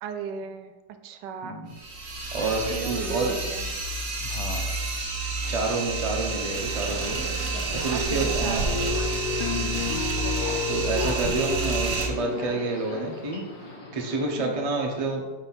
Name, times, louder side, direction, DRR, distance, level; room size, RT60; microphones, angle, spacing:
voice 1, 0.0-0.7 1.0-1.7 2.4-3.7 7.9-8.8 14.4-14.7, right 7 dB, 80° right, 8 dB, 1.2 m, -35 dB
sound 1, 1.7-12.1, right 3 dB, 55° right, 1.3 m, -29 dB
voice 2, 2.3-3.4 4.2-4.6 5.5-7.2 7.7-8.7 9.5-9.9 10.7-13.4 13.7-15.2, right 3 dB, 30° right, 1 dB, 0.6 m, -29 dB
Subway metro underground, 5.3-14.2, left 1 dB, 60° left, 1.6 m, -40 dB
sound 2, 8.7-13.3, left 6 dB, 80° left, 1.2 m, -31 dB
5.1 x 4.0 x 5.8 m, 1.2 s
omnidirectional pair, 1.9 m